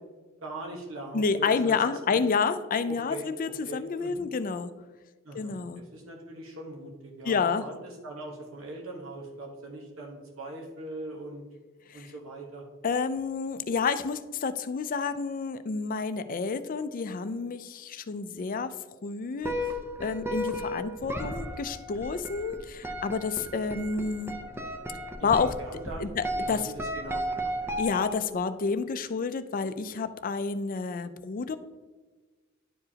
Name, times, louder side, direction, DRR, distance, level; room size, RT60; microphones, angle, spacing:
voice 1, 0.4-2.2 2.9-4.3 5.2-11.4 11.9-12.6 23.5-23.6 25.2-27.5, right 2 dB, 80° right, 0 dB, 1.2 m, -41 dB
voice 2, 1.1-4.7 5.3-5.8 7.2-7.7 11.9-12.1 12.8-18.7 19.0-19.5 20.0-24.3 25.2-25.6 26.0-26.7 27.8-31.6, left 5 dB, 40° left, 11 dB, 0.4 m, -29 dB
sound 1, 19.4-28.4, equal, 10° right, 0.6 m, -35 dB
10.5 x 4.8 x 2.8 m, 1.3 s
head